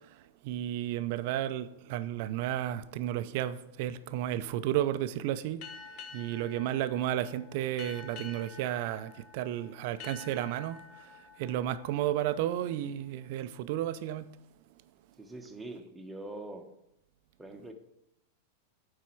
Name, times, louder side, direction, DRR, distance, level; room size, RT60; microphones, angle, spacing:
voice 1, 0.4-5.6 6.1-11.1 11.4-14.3, right 12 dB, 60° right, 0.5 m, -32 dB
sound 1, 5.6-12.9, left 5 dB, 50° left, 1.2 m, -49 dB
voice 2, 15.2-16.7 17.4-17.7, right 2 dB, 10° right, 1.0 m, -43 dB
9.3 x 4.2 x 4.5 m
hypercardioid pair, 110°, 0 cm